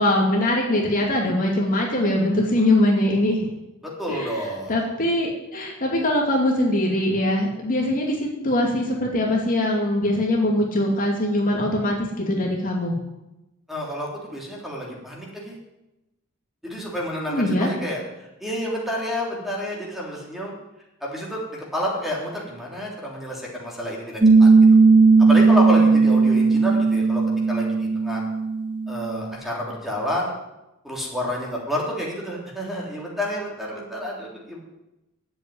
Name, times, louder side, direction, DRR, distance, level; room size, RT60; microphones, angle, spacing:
voice 1, 0.0-3.5 4.1-12.9 17.3-17.7, left 1 dB, 40° left, -1 dB, 2.6 m, -22 dB
voice 2, 4.0-4.8 13.7-15.5 16.6-20.5 21.0-24.8 25.2-27.2 27.5-28.2 28.9-30.3 30.8-34.6, equal, ahead, -3 dB, 3.4 m, -29 dB
Piano, 24.2-29.3, right 4 dB, 25° right, 0.6 m, -16 dB
11.0 x 7.9 x 9.4 m, 0.95 s
head